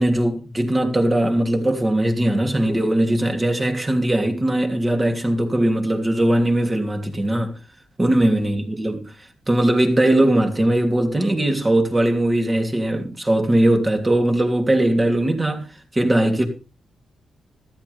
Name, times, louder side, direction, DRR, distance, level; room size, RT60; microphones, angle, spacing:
voice 1, 0.0-7.5 8.0-9.1 9.5-15.7 15.9-16.4, right 1 dB, 20° right, 3.1 m, -20 dB
14.0 x 14.0 x 3.5 m
cardioid pair, 105°, 0 cm